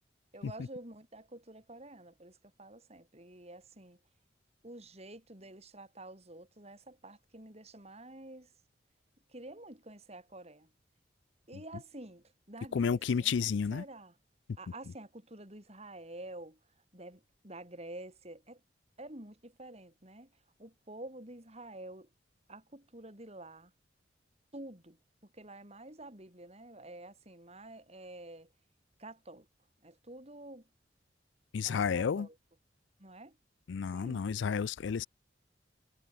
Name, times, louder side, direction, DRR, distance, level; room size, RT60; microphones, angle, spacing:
voice 1, 0.3-4.0 4.6-8.5 9.3-10.7 11.5-14.1 14.6-16.6 16.9-18.6 19.0-20.3 20.6-22.1 22.5-23.7 24.5-28.5 29.0-29.5 29.8-30.7 31.6-32.3 33.0-33.4 33.9-34.2, right 1 dB, 35° right, 6.0 m, -49 dB
voice 2, 12.7-13.8 31.5-32.3 33.7-35.1, left 6 dB, 80° left, 0.4 m, -31 dB
head